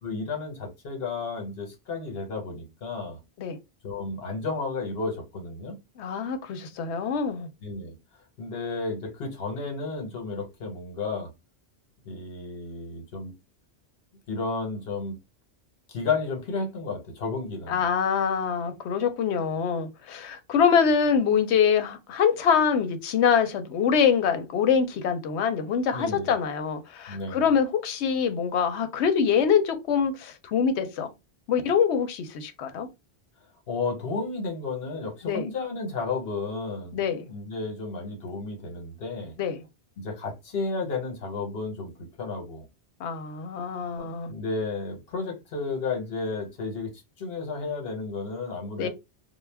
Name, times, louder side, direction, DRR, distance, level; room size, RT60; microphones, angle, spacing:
voice 1, 0.0-3.2 3.8-5.8 7.6-7.9 8.4-11.3 12.1-13.3 14.3-15.2 15.9-17.8 25.9-26.3 27.1-27.5 33.7-39.4 40.0-42.6 44.0-46.9 47.2-48.9, left 3 dB, 65° left, 1.1 m, -32 dB
voice 2, 6.0-7.5 17.7-31.1 31.5-32.9 35.2-35.5 36.9-37.3 39.4-39.6 43.0-44.3 48.8-48.9, left 7 dB, 85° left, 0.9 m, -24 dB
2.3 x 2.1 x 3.3 m
omnidirectional pair, 1.1 m